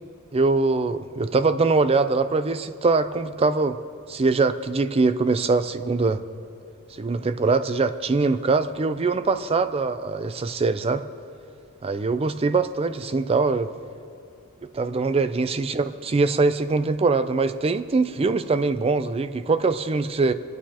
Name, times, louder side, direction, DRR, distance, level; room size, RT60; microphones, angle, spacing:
voice 1, 0.3-3.8 4.1-6.2 7.0-11.0 11.8-13.7 14.7-20.3, right 3 dB, 25° right, 11 dB, 0.4 m, -22 dB
25.5 x 9.2 x 2.9 m, 2.5 s
head